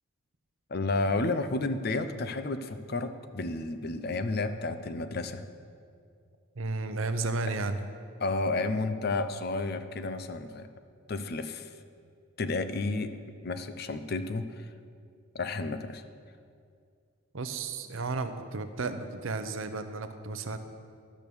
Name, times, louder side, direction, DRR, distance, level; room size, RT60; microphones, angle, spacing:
voice 1, 0.7-5.4 8.2-10.7 11.1-11.7 12.4-13.2 13.4-14.7 15.3-16.0, left 3 dB, 45° left, 10 dB, 0.5 m, -31 dB
voice 2, 6.6-7.8 17.3-20.6, right 3 dB, 70° right, 9 dB, 0.7 m, -33 dB
12.0 x 6.3 x 7.0 m, 2.3 s
head